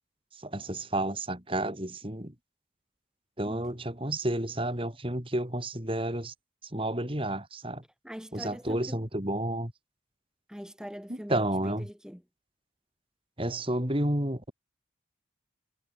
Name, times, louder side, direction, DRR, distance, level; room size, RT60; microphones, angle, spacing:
voice 1, 0.4-2.3 3.4-6.3 6.6-7.8 8.3-9.7 11.3-11.9 13.4-14.5, right 1 dB, 30° right, 4.3 m, -31 dB
voice 2, 3.5-3.8 8.0-9.0 10.5-12.2, equal, 5° right, 2.9 m, -43 dB
head